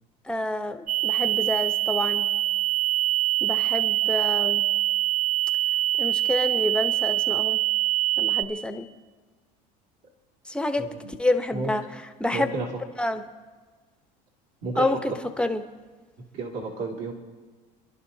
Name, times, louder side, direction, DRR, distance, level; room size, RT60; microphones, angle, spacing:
voice 1, 0.3-2.3 3.4-4.6 6.0-7.6 8.2-8.9 10.5-10.8 11.2-11.8 12.2-12.5 13.0-13.2 14.8-15.6, left 1 dB, 5° left, 7 dB, 0.9 m, -28 dB
sound 1, 0.9-8.4, right 15 dB, 40° right, 0.7 m, -24 dB
voice 2, 10.8-11.1 11.5-11.7 12.3-12.7 14.6-14.9 16.3-17.1, right 3 dB, 60° right, -2 dB, 2.5 m, -31 dB
29.5 x 11.0 x 2.8 m, 1.4 s
supercardioid pair, 105°, 21 cm